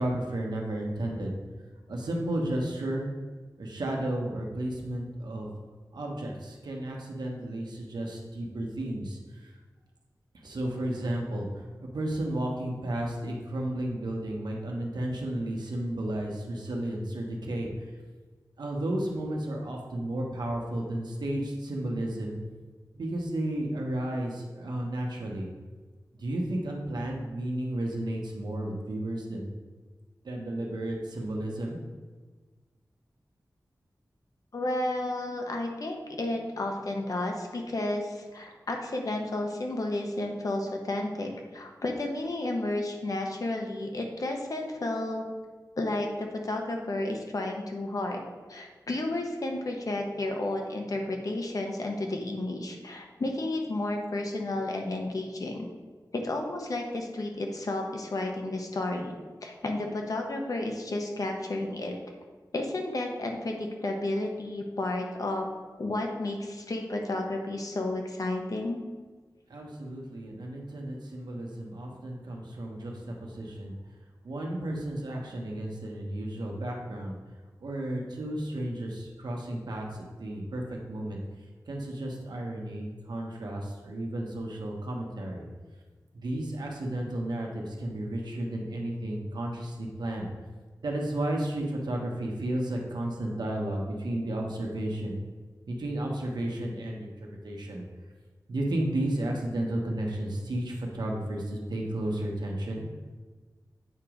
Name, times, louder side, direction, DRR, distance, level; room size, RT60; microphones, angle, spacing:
voice 1, 0.0-1.3 1.9-3.1 3.6-5.5 5.9-9.5 10.4-11.5 11.8-17.7 18.6-22.4 22.9-25.5 26.2-29.5 30.2-31.8 69.5-73.7 74.2-77.2 77.6-81.2 81.7-85.5 86.1-90.3 90.8-95.2 95.7-97.8 98.5-102.8, right 1 dB, 85° right, 0 dB, 1.1 m, -33 dB
voice 2, 34.5-45.3 45.8-48.2 48.5-55.7 56.1-62.0 62.5-65.5 65.8-68.8, left 2 dB, 55° left, 2 dB, 1.0 m, -32 dB
8.4 x 3.0 x 5.0 m, 1.4 s
wide cardioid pair, 80°, 7 cm